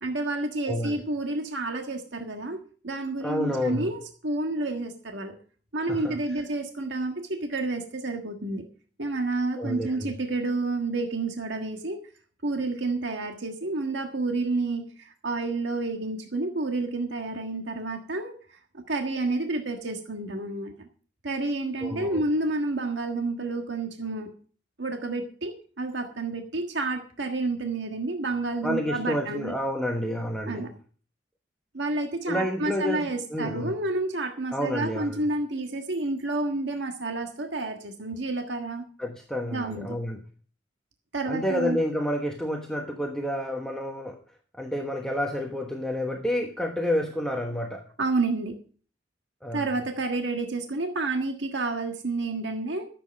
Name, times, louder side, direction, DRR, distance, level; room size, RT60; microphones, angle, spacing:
voice 1, 0.0-5.3 5.7-8.6 9.0-12.0 12.4-20.9 21.2-24.3 24.8-29.5 30.4-30.7 31.7-38.9 39.5-40.0 41.1-41.8 48.0-48.6 49.5-52.9, right 2 dB, 80° right, 1.5 m, -30 dB
voice 2, 0.7-1.0 3.2-3.9 5.9-6.4 9.6-10.1 21.8-22.2 28.6-30.7 32.3-33.7 34.5-35.2 39.0-40.2 41.3-44.2 44.5-47.9 49.4-49.7, left 1 dB, 5° left, 1.1 m, -29 dB
13.5 x 7.9 x 6.3 m
head